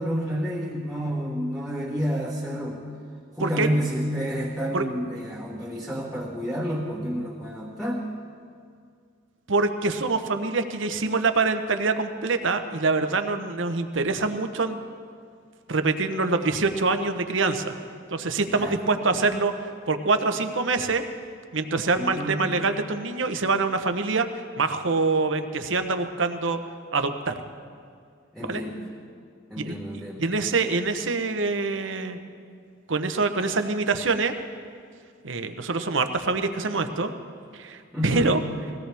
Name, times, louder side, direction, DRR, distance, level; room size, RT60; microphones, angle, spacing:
voice 1, 0.0-2.8 3.4-8.1 18.6-18.7 22.0-22.5 28.3-28.8 29.5-30.3 37.9-38.3, equal, ahead, -6 dB, 1.4 m, -29 dB
voice 2, 9.5-14.8 15.7-17.7 18.1-21.0 21.5-24.3 24.6-26.6 26.9-27.4 28.4-28.6 29.6-32.2 32.9-34.3 35.2-37.1 37.5-38.4, right 3 dB, 70° right, 8 dB, 0.9 m, -25 dB
21.0 x 17.0 x 3.5 m, 2.2 s
head